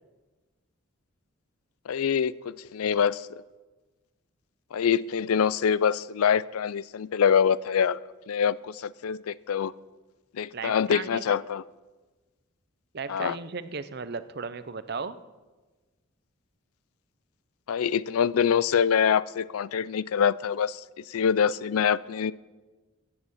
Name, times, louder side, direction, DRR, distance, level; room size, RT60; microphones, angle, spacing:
voice 1, 1.9-3.3 4.7-8.0 8.3-9.7 10.4-11.6 13.1-13.4 17.7-20.8 21.1-22.3, left 7 dB, 85° left, 20 dB, 0.4 m, -25 dB
voice 2, 10.5-11.4 12.9-15.2, right 5 dB, 50° right, 13 dB, 0.6 m, -36 dB
14.0 x 8.6 x 7.1 m, 1.2 s
head